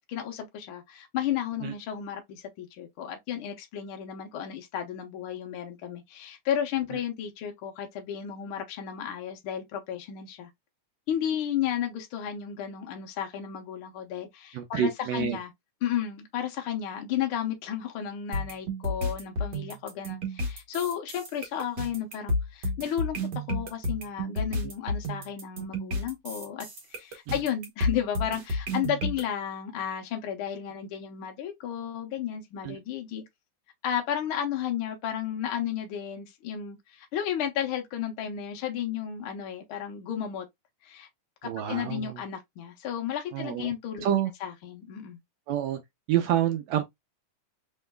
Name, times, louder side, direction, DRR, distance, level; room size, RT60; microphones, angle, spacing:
voice 1, 0.1-10.5 11.1-15.5 15.8-33.2 33.8-40.4 40.8-41.1 41.4-44.0 44.4-45.2, left 9 dB, 80° left, 1.2 m, -33 dB
voice 2, 14.5-15.4 24.6-24.7 27.3-27.4 32.6-32.8 41.4-42.2 43.3-43.7 44.0-44.3 45.5-45.8 46.1-46.8, right 10 dB, 80° right, 1.6 m, -28 dB
sound 1, 18.3-29.2, left 1 dB, 60° right, 1.1 m, -31 dB
5.5 x 3.1 x 2.2 m
omnidirectional pair, 3.6 m